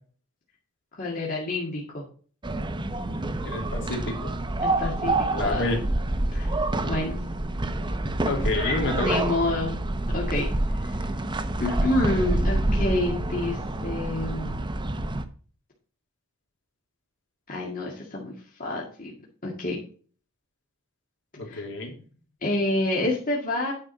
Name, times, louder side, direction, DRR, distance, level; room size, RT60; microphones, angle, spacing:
voice 1, 1.0-2.1 4.6-5.8 6.3-6.5 6.9-7.2 9.0-9.8 10.1-10.5 10.8-11.0 11.6-14.5 17.5-18.3 18.6-19.1 19.4-19.8 21.5-21.6 22.4-23.7, left 2 dB, 40° left, -3 dB, 2.0 m, -28 dB
sound 1, 2.4-15.2, right 2 dB, 20° right, 0.7 m, -27 dB
voice 2, 3.4-4.3 5.3-5.8 8.3-9.2 21.4-21.9, left 2 dB, 55° left, 1 dB, 2.7 m, -28 dB
9.7 x 5.2 x 5.6 m, 0.42 s
head